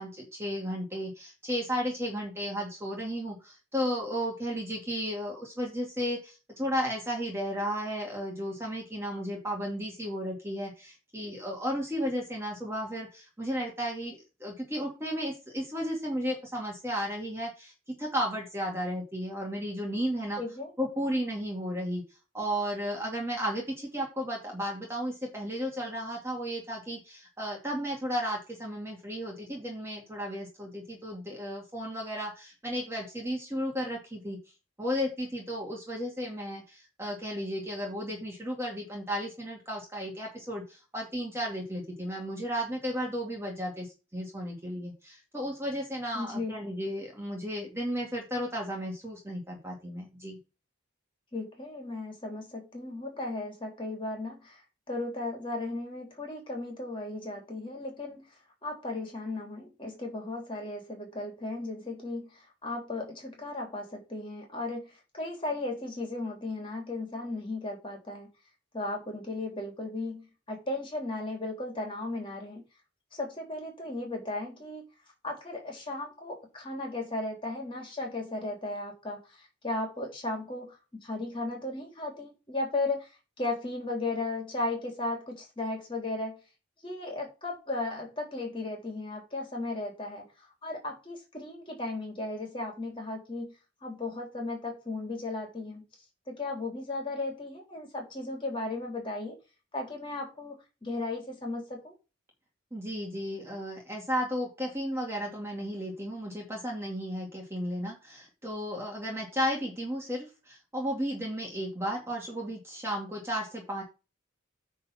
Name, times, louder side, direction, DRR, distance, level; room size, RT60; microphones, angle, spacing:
voice 1, 0.0-17.7 18.0-20.4 20.8-22.0 22.3-34.4 34.8-50.4 102.7-113.8, equal, 15° right, 2.3 m, -34 dB
voice 2, 20.4-20.7 46.1-46.6 51.3-54.6 54.9-58.3 58.6-68.3 68.7-72.6 73.1-74.8 75.2-80.8 81.0-83.1 83.4-86.4 86.8-90.2 90.6-93.5 93.8-95.8 96.3-99.4 99.7-100.6 100.8-101.9, left 2 dB, 25° left, 3.7 m, -35 dB
9.5 x 4.0 x 5.8 m
head